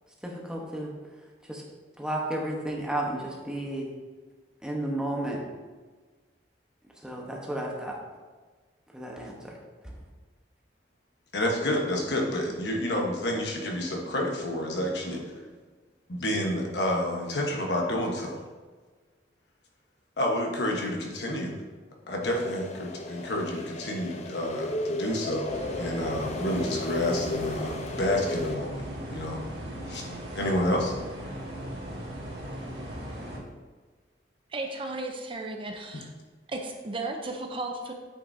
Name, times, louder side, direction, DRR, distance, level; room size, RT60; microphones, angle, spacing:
voice 1, 0.2-0.9 1.5-1.6 2.0-3.9 4.6-5.4 7.0-8.0 8.9-9.6 9.8-9.9, right 1 dB, 5° right, -2 dB, 1.1 m, -32 dB
voice 2, 11.3-15.3 16.1-18.4 20.2-21.5 22.1-29.4 29.9-30.9 35.9-36.0, left 1 dB, 70° left, 1 dB, 1.2 m, -29 dB
sound 1, 22.2-28.6, left 1 dB, 40° left, 0.5 m, -34 dB
sound 2, 25.5-33.4, right 1 dB, 65° right, 1.7 m, -38 dB
voice 3, 34.5-36.1 36.5-37.9, right 2 dB, 30° right, 3 dB, 0.7 m, -34 dB
8.6 x 5.7 x 2.7 m, 1.4 s
head